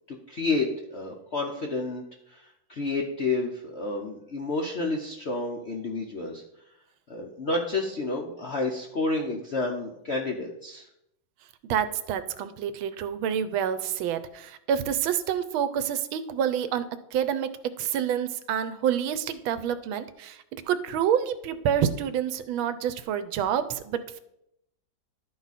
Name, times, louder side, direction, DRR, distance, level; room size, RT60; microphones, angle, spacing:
voice 1, 0.3-6.4 7.1-10.9, left 3 dB, 60° left, 0 dB, 0.7 m, -30 dB
voice 2, 11.6-16.8 17.1-17.5 17.8-24.2, right 9 dB, 85° right, 12 dB, 1.4 m, -28 dB
12.0 x 4.7 x 4.1 m, 0.79 s
omnidirectional pair, 2.2 m